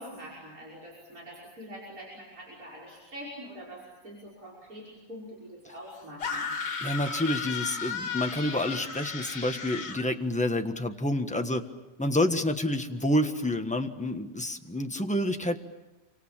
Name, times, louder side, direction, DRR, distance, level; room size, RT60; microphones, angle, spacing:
voice 1, 0.0-6.5, equal, 50° right, -4 dB, 6.3 m, -44 dB
sound 1, 6.2-10.1, left 6 dB, 75° left, 2.7 m, -34 dB
voice 2, 6.8-11.6 12.0-15.6, left 1 dB, 5° left, 5 dB, 1.2 m, -28 dB
28.5 x 25.5 x 7.5 m, 1.1 s
omnidirectional pair, 1.9 m